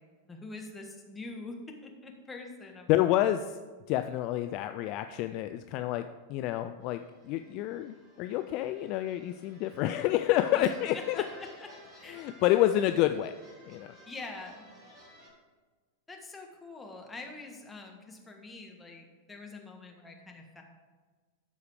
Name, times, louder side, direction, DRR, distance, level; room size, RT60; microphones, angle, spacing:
voice 1, 0.2-3.1 10.5-10.7 10.9-11.7 12.0-12.5 14.1-14.7 16.1-20.6, left 3 dB, 10° left, 1 dB, 1.4 m, -45 dB
voice 2, 2.9-3.6 3.9-11.2 12.1-13.3 13.7-13.9, left 13 dB, 40° left, 8 dB, 0.3 m, -28 dB
sound 1, 6.8-15.3, equal, 25° right, 3.2 m, -55 dB
13.0 x 4.8 x 4.8 m, 1.4 s
figure-of-eight pair, 90°, 0 cm